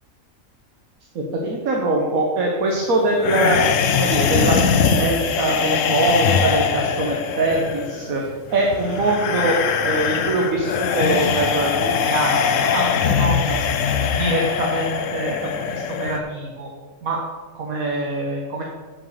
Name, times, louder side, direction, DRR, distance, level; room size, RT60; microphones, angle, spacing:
voice 1, 1.1-3.6 3.9-8.2 8.5-9.6 9.8-13.6 14.1-16.7 17.0-17.2 17.5-18.6, right 2 dB, 85° right, -1 dB, 1.6 m, -23 dB
sound 1, 3.2-16.2, left 7 dB, 70° left, 1.0 m, -22 dB
7.4 x 6.5 x 6.6 m, 1.5 s
omnidirectional pair, 1.5 m